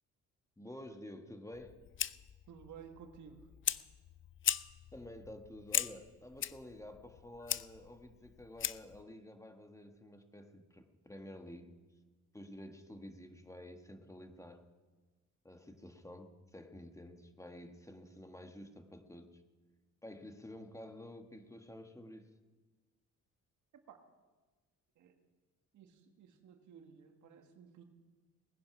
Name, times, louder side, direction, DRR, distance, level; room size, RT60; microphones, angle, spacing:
voice 1, 0.6-1.8 4.9-11.8 12.3-14.6 15.4-19.4 20.0-22.3, left 1 dB, 10° left, 6 dB, 1.5 m, -51 dB
Fire, 1.5-9.0, left 10 dB, 40° left, 0.5 m, -39 dB
voice 2, 2.5-3.5 23.7-24.0 25.0-25.2 25.7-27.8, right 7 dB, 75° right, 6 dB, 1.7 m, -55 dB
20.0 x 9.9 x 6.0 m, 1.3 s
cardioid pair, 90°, 30 cm